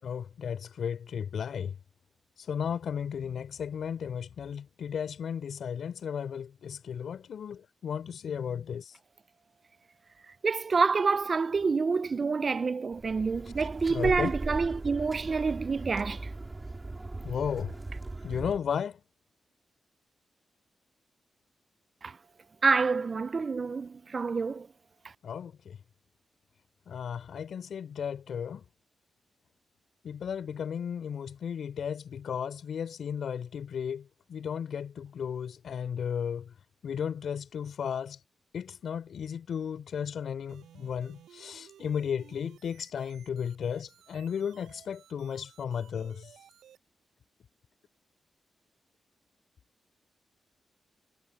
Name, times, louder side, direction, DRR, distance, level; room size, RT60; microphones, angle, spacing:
voice 1, 0.0-1.8 2.5-8.9 13.9-14.3 17.2-17.8 18.2-19.0 25.2-25.8 26.9-28.6 30.0-36.5 36.8-38.2 38.5-46.3, left 7 dB, 75° left, 4.0 m, -34 dB
voice 2, 10.4-16.3 22.0-22.2 22.6-24.7, right 4 dB, 50° right, 0.7 m, -27 dB
sound 1, 12.9-18.6, right 2 dB, 30° right, 5.0 m, -38 dB
sound 2, 40.5-46.8, right 10 dB, 85° right, 6.9 m, -56 dB
supercardioid pair, 50°, 0 cm